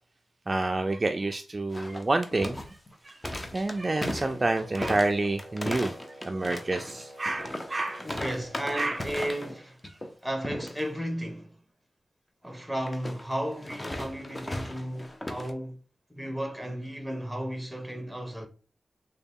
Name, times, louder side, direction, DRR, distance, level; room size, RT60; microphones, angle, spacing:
voice 1, 0.5-2.8 3.0-3.2 3.5-5.9 6.2-8.0 8.7-9.0, right 2 dB, 35° right, 0.3 m, -28 dB
sound 1, 1.7-9.6 9.8-10.1 10.4-10.8 12.9-15.5, left 1 dB, 20° left, 0.6 m, -37 dB
Wind instrument woodwind instrument, 4.3-9.6, equal, 60° left, 1.5 m, -48 dB
voice 2, 8.0-9.8 10.2-11.6 12.4-15.8 16.1-18.5, equal, ahead, 1.0 m, -34 dB
3.9 x 2.2 x 3.6 m
cardioid pair, 60°, 0 cm